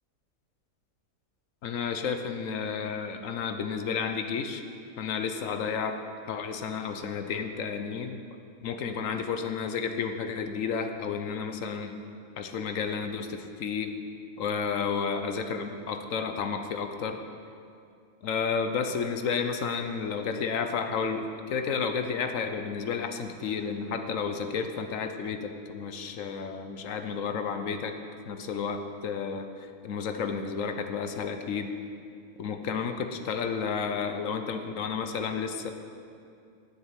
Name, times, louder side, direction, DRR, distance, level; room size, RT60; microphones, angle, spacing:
voice 1, 1.6-4.6 5.0-6.0 6.2-8.2 8.6-11.9 12.4-13.9 14.4-17.2 18.2-27.9 28.3-29.5 29.8-31.7 32.4-35.7, left 6 dB, 70° left, 7 dB, 1.1 m, -31 dB
9.1 x 7.1 x 8.9 m, 2.4 s
omnidirectional pair, 1.5 m